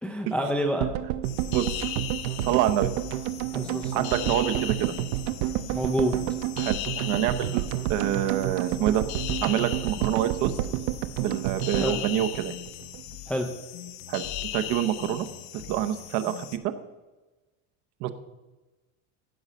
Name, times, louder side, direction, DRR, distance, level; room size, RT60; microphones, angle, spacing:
voice 1, 0.0-0.9 3.5-4.1 5.7-6.2 11.8-11.9 13.3-13.5, equal, 5° left, 3 dB, 0.4 m, -28 dB
sound 1, 0.8-13.0 13.3-13.4 13.5-13.6, right 14 dB, 85° right, 0.7 m, -30 dB
sound 2, 1.2-16.6, left 13 dB, 80° left, 0.9 m, -38 dB
voice 2, 2.4-2.9 3.9-4.9 6.6-9.0 9.4-10.5 11.2-12.5 14.1-14.2 14.5-15.3 15.7-16.7 18.0-18.1, right 11 dB, 45° right, 10 dB, 0.9 m, -26 dB
15.5 x 5.5 x 6.3 m, 1.2 s
cardioid pair, 175°, 39 cm